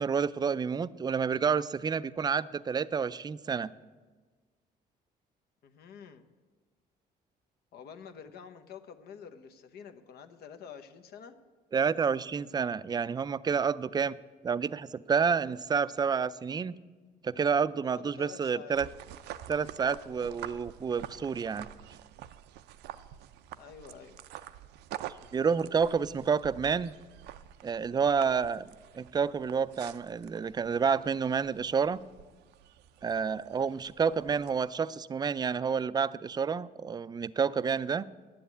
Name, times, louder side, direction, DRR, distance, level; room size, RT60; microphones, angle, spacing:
voice 1, 0.0-3.7 11.7-14.2 14.4-16.8 17.2-18.9 19.5-21.7 25.3-26.9 27.6-28.7 28.9-32.0 33.0-38.1, right 6 dB, 25° right, 17 dB, 0.4 m, -29 dB
voice 2, 5.6-6.3 7.7-11.3 17.9-18.8 23.6-24.2, left 7 dB, 70° left, 7 dB, 1.0 m, -48 dB
sound 1, 18.7-34.7, right 12 dB, 80° right, 0.5 m, -47 dB
10.5 x 7.8 x 8.3 m, 1.3 s
cardioid pair, 85°, 17 cm